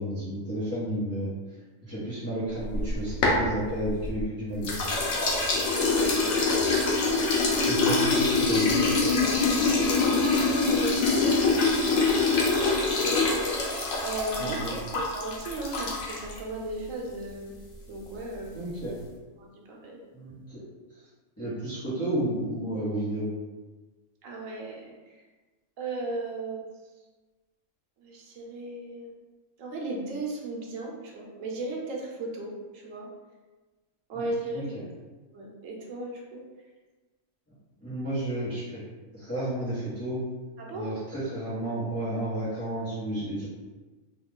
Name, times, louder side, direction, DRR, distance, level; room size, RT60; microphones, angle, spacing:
voice 1, 0.0-1.3 1.8-4.8 7.6-9.1 14.4-14.8 18.5-18.9 20.1-20.6 20.9-21.0 21.4-23.2 34.1-34.2 34.5-34.8 37.8-38.8 39.1-40.2 40.7-43.5, right 1 dB, 15° left, -12 dB, 1.0 m, -32 dB
sound 1, 2.6-4.2 4.6-16.4, left 3 dB, 85° left, 1.1 m, -25 dB
voice 2, 5.6-6.6 9.7-12.0 12.6-13.3 14.0-17.5 17.9-18.6 19.4-20.0 24.2-24.9 25.8-26.6 28.0-29.2 29.6-33.1 34.1-34.6 35.3-36.4 40.6-40.9, right 2 dB, 80° right, -1 dB, 1.1 m, -36 dB
3.1 x 2.3 x 3.6 m, 1.3 s
omnidirectional pair, 1.3 m